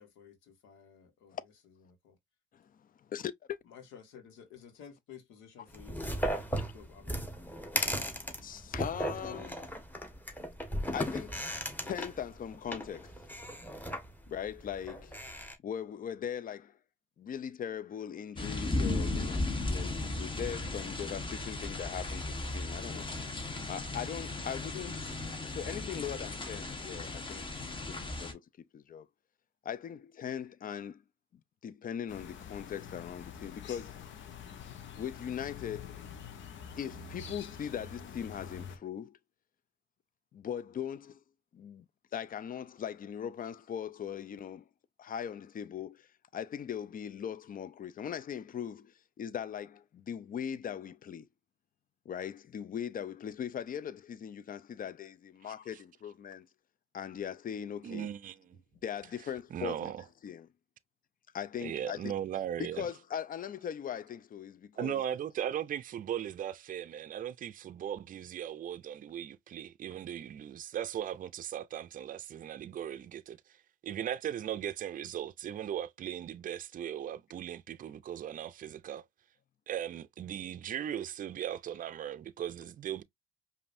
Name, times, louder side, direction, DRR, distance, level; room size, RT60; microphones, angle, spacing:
voice 1, 0.0-2.2 3.6-7.3, left 7 dB, 90° left, 1.3 m, -54 dB
voice 2, 2.5-3.6 7.8-9.7 10.9-11.5 11.8-13.1 14.3-15.1 15.6-16.8 17.2-23.1 23.7-29.1 29.6-31.0 31.3-34.2 35.0-36.0 36.8-39.2 40.3-41.2 41.5-41.9 42.1-44.7 45.0-51.3 52.1-56.5 56.9-58.1 58.8-59.9 60.2-60.5 61.3-62.1 62.6-65.0, left 8 dB, 45° left, 0.5 m, -40 dB
sound 1, 5.7-15.5, equal, 10° left, 1.4 m, -37 dB
sound 2, 18.4-28.3, left 2 dB, 25° left, 1.2 m, -36 dB
sound 3, 32.1-38.8, left 7 dB, 75° left, 1.0 m, -46 dB
voice 3, 57.8-58.4 59.5-60.0 61.6-62.9 64.8-73.4 73.8-79.0 79.7-83.0, right 10 dB, 45° right, 0.4 m, -38 dB
5.2 x 2.6 x 2.6 m
supercardioid pair, 75°, 20 cm